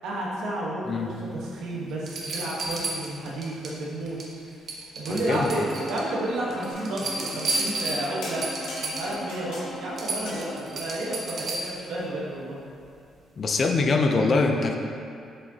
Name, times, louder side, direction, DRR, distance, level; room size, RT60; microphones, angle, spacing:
voice 1, 0.0-4.2 5.0-5.6 5.9-8.4 8.8-12.6, right 1 dB, 85° right, -5 dB, 1.3 m, -31 dB
sound 1, 1.3-1.4 2.1-3.8 4.1-4.4 4.7-6.1 6.5-9.2 9.6-9.7 10.0-11.9 13.6-13.7, right 3 dB, 55° right, 1.0 m, -32 dB
voice 2, 5.1-5.5 13.4-14.8, left 3 dB, 45° left, 3 dB, 0.6 m, -23 dB
Bowed string instrument, 5.3-10.8, equal, 60° left, 1.5 m, -39 dB
sound 2, 6.7-7.2 7.5-7.9 8.2-9.6 10.0-10.9 12.0-12.1, left 2 dB, 80° left, 1.5 m, -39 dB
7.5 x 4.9 x 2.9 m, 2.4 s
cardioid pair, 90°, 0 cm